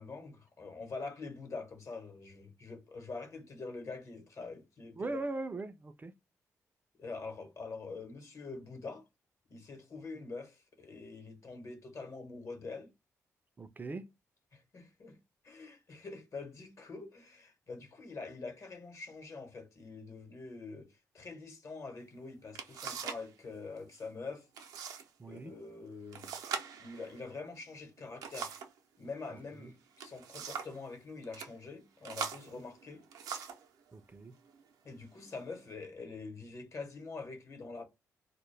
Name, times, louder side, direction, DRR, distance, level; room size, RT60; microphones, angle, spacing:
voice 1, 0.0-5.2 6.9-9.0 9.5-12.9 14.5-15.2 15.4-24.5 25.3-26.3 26.8-28.6 29.0-33.0 34.8-37.9, left 3 dB, 55° left, 0.9 m, -45 dB
voice 2, 5.0-6.1 13.6-14.1 25.2-25.5 29.3-29.7 32.5-32.6 33.9-34.3, right 2 dB, 30° right, 0.4 m, -40 dB
sound 1, 22.0-22.1 22.5-23.3 23.6-24.0 24.5-25.1 25.4-25.5 26.1-28.8 29.8-30.8 31.2-31.5 32.0-33.7 34.4-34.6 35.2-35.7, right 7 dB, 85° right, 0.5 m, -42 dB
2.2 x 2.0 x 3.1 m
supercardioid pair, 60°, 6 cm